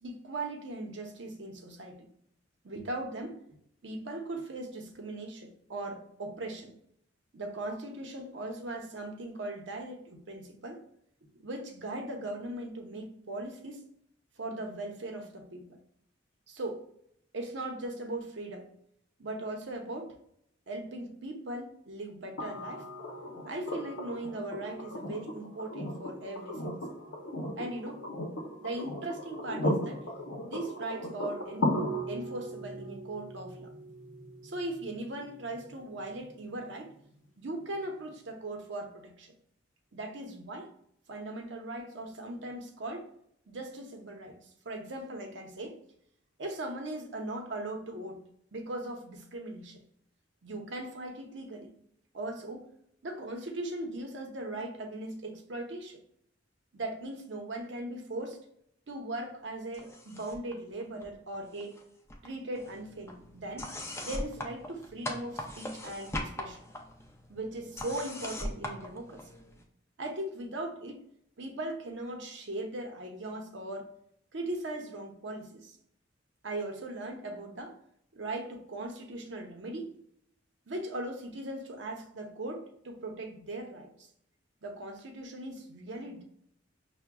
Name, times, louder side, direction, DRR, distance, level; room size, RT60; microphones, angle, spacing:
voice 1, 0.0-2.1 2.6-3.4 3.8-6.7 7.3-10.8 11.3-13.8 14.4-15.8 16.5-16.8 17.3-18.7 19.2-20.1 20.7-22.8 23.5-27.0 27.6-28.0 28.6-30.1 30.4-31.7 32.1-33.7 34.4-36.9 37.4-39.3 39.9-40.7 41.1-43.1 43.5-45.8 46.4-48.2 48.5-49.8 50.4-51.7 52.1-52.7 53.0-56.0 56.7-58.4 58.9-61.8 62.2-63.7 64.0-66.6 67.3-69.2 70.0-71.0 71.4-73.9 74.3-75.8 76.4-77.8 78.1-79.9 80.7-84.1 84.6-86.2, right 2 dB, 70° right, 3 dB, 0.7 m, -39 dB
sound 1, 22.4-36.3 38.1-38.2, left 1 dB, 85° left, 0.7 m, -37 dB
sound 2, 59.7-60.5 60.8-61.8 62.1-69.6, left 1 dB, 15° left, 0.4 m, -41 dB
5.8 x 2.1 x 2.2 m, 0.70 s
head